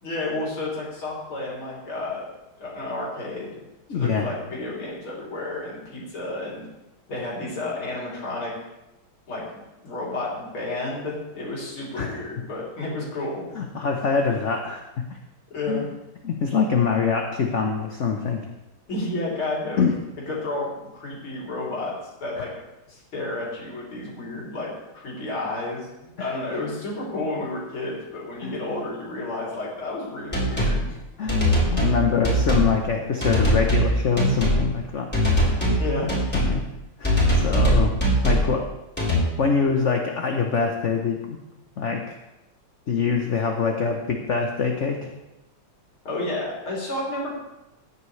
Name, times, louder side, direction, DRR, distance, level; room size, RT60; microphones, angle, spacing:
voice 1, 0.0-2.2 2.6-3.5 3.9-6.7 7.1-8.5 9.3-13.5 15.5-15.8 18.9-19.9 20.3-22.5 22.9-31.0 35.8-36.1 46.1-47.4, left 2 dB, 85° left, -6 dB, 4.1 m, -31 dB
voice 2, 3.9-4.3 12.0-12.1 13.5-14.8 15.1-15.2 15.7-15.9 16.2-18.4 19.8-19.9 22.4-22.5 26.2-26.3 28.4-28.5 31.2-35.1 35.4-35.8 36.4-36.6 37.0-37.9 38.2-38.6 39.4-41.4 41.8-42.0 42.9-45.1, left 5 dB, 50° left, 2 dB, 0.9 m, -24 dB
sound 1, 30.3-30.8 31.3-31.9 32.2-32.7 33.2-33.9 34.2-34.6 35.1-35.8 36.1-36.5 37.0-38.5 39.0-39.2, equal, 5° left, 3.7 m, -20 dB
15.0 x 9.9 x 3.2 m, 0.98 s
omnidirectional pair, 2.2 m